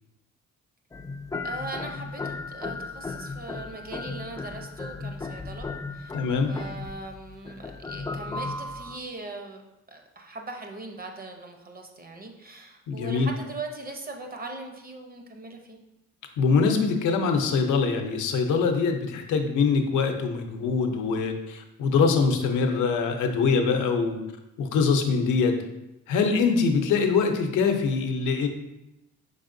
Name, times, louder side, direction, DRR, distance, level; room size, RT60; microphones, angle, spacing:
sound 1, 0.9-9.0, left 3 dB, 10° left, 0.3 m, -36 dB
voice 1, 1.4-9.6 9.9-15.8, right 3 dB, 30° right, 3 dB, 0.7 m, -40 dB
voice 2, 6.1-6.5 12.9-13.3 16.4-24.2 24.6-25.6 26.1-28.5, left 5 dB, 85° left, 5 dB, 0.7 m, -23 dB
5.4 x 3.5 x 2.6 m, 0.94 s
cardioid pair, 90°, 30 cm